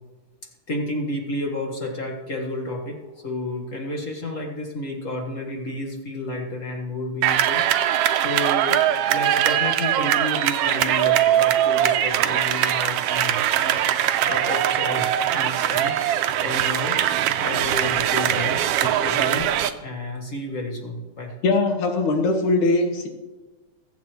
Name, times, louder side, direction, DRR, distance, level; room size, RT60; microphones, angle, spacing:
voice 1, 0.7-19.5 19.8-21.3, left 1 dB, 40° left, 1 dB, 1.1 m, -31 dB
sound 1, 7.2-19.7, right 11 dB, 85° right, 1.4 m, -21 dB
voice 2, 21.4-23.1, left 3 dB, 85° left, 4 dB, 2.8 m, -21 dB
21.5 x 8.2 x 3.1 m, 1.2 s
omnidirectional pair, 3.3 m